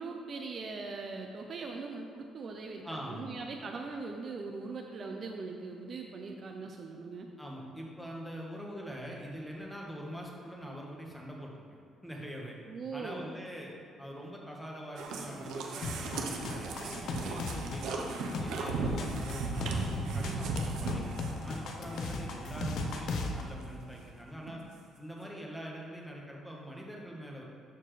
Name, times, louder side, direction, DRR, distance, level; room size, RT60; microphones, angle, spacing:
voice 1, 0.0-7.3 12.7-13.3, right 4 dB, 45° right, 2 dB, 0.6 m, -40 dB
voice 2, 2.8-3.3 7.4-11.6 12.0-12.6 12.9-18.0 18.4-21.1 21.4-24.6 25.0-27.4, equal, ahead, -2 dB, 1.3 m, -44 dB
sound 1, 15.0-23.3 23.6-23.7 24.2-24.3 24.5-24.6, right 3 dB, 80° right, 0.8 m, -36 dB
sound 2, 15.8-23.4, left 3 dB, 65° left, 0.7 m, -38 dB
sound 3, 16.1-23.4, left 3 dB, 40° left, 0.9 m, -51 dB
12.0 x 4.5 x 3.3 m, 2.3 s
cardioid pair, 105°, 0 cm